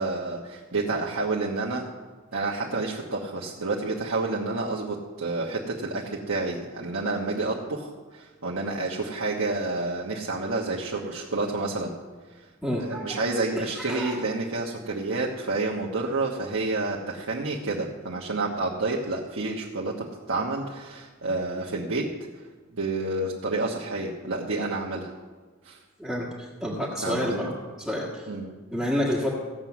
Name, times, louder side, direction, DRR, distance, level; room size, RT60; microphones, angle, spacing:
voice 1, 0.0-1.9 2.3-11.9 12.3-12.5 12.8-22.1 22.7-25.1 25.6-25.8 27.0-27.5 28.3-28.5, right 3 dB, 70° right, -4 dB, 1.3 m, -29 dB
voice 2, 12.6-13.2 13.6-14.1 26.0-27.5 27.8-28.3 28.7-29.3, equal, ahead, -6 dB, 1.6 m, -29 dB
16.0 x 7.6 x 6.1 m, 1.4 s
head